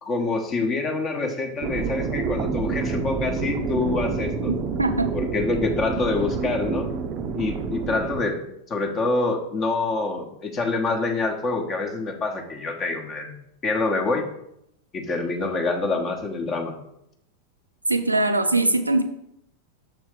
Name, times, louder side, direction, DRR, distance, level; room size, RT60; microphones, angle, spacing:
voice 1, 0.0-4.5 5.1-6.9 7.3-8.4 8.7-13.3 13.6-14.2 14.9-16.7, left 3 dB, 30° left, 3 dB, 1.0 m, -26 dB
sound 1, 1.6-8.2, right 5 dB, 35° right, 0.5 m, -28 dB
voice 2, 4.5-5.1 17.9-19.0, right 2 dB, 85° right, 8 dB, 0.5 m, -22 dB
6.5 x 3.4 x 4.8 m, 0.78 s
figure-of-eight pair, 90°, 0 cm